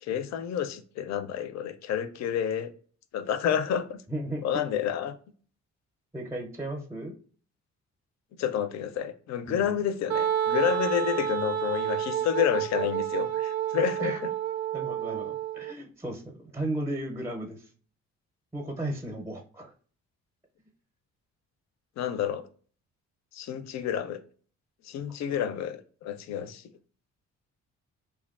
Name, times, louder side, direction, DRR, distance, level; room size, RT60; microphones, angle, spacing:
voice 1, 0.0-2.7 3.1-4.0 4.4-5.1 8.4-14.3 22.0-22.5 23.3-24.2 24.8-26.6, left 9 dB, 65° left, 0.5 m, -29 dB
voice 2, 4.1-4.4 6.1-7.1 9.5-9.8 14.0-14.2 14.7-17.7 18.5-19.7 25.3-25.4 26.4-26.5, right 1 dB, 10° right, 0.5 m, -35 dB
Wind instrument woodwind instrument, 10.1-15.7, right 10 dB, 55° right, 0.4 m, -29 dB
3.0 x 2.2 x 2.3 m
cardioid pair, 90°, 30 cm